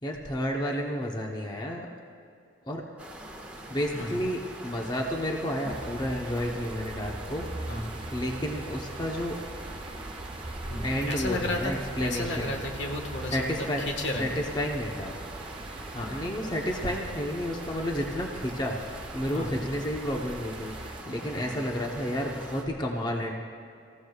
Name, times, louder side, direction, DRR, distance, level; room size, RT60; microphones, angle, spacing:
voice 1, 0.0-1.9 2.6-2.8 3.7-7.5 8.1-9.4 10.8-12.5 13.3-13.8 14.2-15.2 15.9-20.7 21.1-23.3, equal, 25° left, 0 dB, 0.9 m, -31 dB
sound 1, 3.0-22.6, right 1 dB, 5° right, 1.5 m, -43 dB
voice 2, 3.9-4.2 7.7-8.0 10.7-14.3 16.0-16.2 19.3-19.7 21.4-21.6, left 1 dB, 70° left, 2 dB, 1.5 m, -34 dB
sound 2, 5.7-21.0, right 2 dB, 30° right, 0.4 m, -41 dB
25.5 x 15.0 x 2.4 m, 2.4 s
head